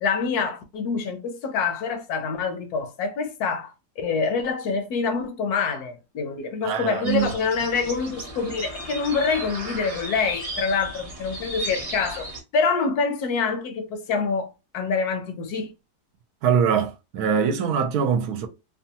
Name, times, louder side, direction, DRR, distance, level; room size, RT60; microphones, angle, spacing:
voice 1, 0.0-14.5 14.7-15.7, left 5 dB, 75° left, 1.1 m, -26 dB
voice 2, 6.6-7.3 16.4-18.5, right 7 dB, 75° right, 1.1 m, -23 dB
sound 1, 7.0-12.4, right 2 dB, 45° right, 0.5 m, -35 dB
2.9 x 2.2 x 2.7 m
omnidirectional pair, 1.7 m